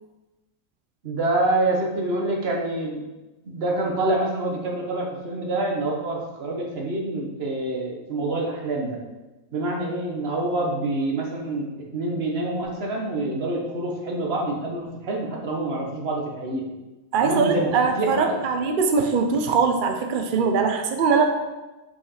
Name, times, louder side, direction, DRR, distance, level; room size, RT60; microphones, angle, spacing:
voice 1, 1.0-3.0 3.4-9.0 9.5-16.7 17.2-18.4, right 2 dB, 45° right, 0 dB, 1.2 m, -26 dB
voice 2, 17.1-21.2, right 5 dB, 75° right, 5 dB, 0.4 m, -21 dB
5.7 x 4.9 x 4.2 m, 1.1 s
omnidirectional pair, 1.6 m